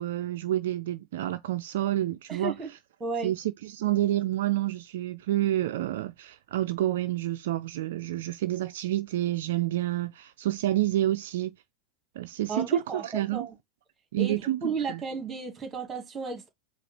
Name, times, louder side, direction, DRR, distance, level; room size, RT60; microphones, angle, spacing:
voice 1, 0.0-2.8 3.2-11.5 12.2-13.5 14.1-14.6 14.9-15.0, right 14 dB, 65° right, 0.3 m, -29 dB
voice 2, 2.3-2.7 3.0-3.3 12.5-13.0 13.3-13.5 14.2-16.5, right 4 dB, 25° right, 1.9 m, -33 dB
4.8 x 2.4 x 3.2 m
hypercardioid pair, 90°, 0 cm